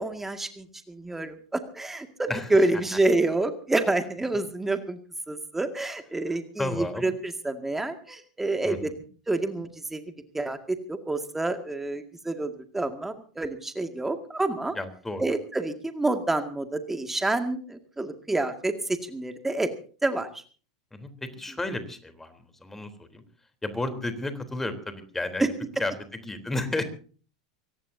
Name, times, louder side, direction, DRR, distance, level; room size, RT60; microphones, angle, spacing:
voice 1, 0.0-5.0 5.3-8.9 9.3-10.0 10.3-14.8 15.2-18.7 19.1-19.7 20.0-20.3 25.4-25.5, right 2 dB, 10° right, 7 dB, 2.1 m, -28 dB
voice 2, 2.3-2.7 6.3-7.1 8.6-8.9 14.7-15.2 20.9-22.3 22.6-23.2 23.6-25.4 25.8-26.8, left 2 dB, 10° left, 9 dB, 3.6 m, -32 dB
24.0 x 18.5 x 2.8 m, 0.40 s
hypercardioid pair, 90°, 3 cm